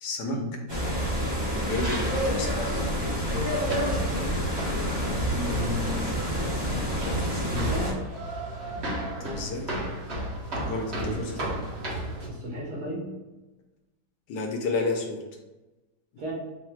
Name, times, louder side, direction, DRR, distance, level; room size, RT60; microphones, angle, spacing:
voice 1, 0.0-0.4 1.5-2.7 9.2-9.9 10.6-11.6 14.3-15.2, left 3 dB, 75° left, 2 dB, 1.2 m, -31 dB
sound 1, 0.7-7.9, equal, 25° right, 0.5 m, -28 dB
sound 2, 2.5-12.3, right 1 dB, 45° right, 1.1 m, -34 dB
voice 2, 5.3-6.1 7.5-8.0 11.0-11.2 12.3-13.1 16.2-16.3, left 1 dB, 60° right, -4 dB, 1.7 m, -33 dB
4.0 x 2.2 x 4.4 m, 1.1 s
omnidirectional pair, 1.9 m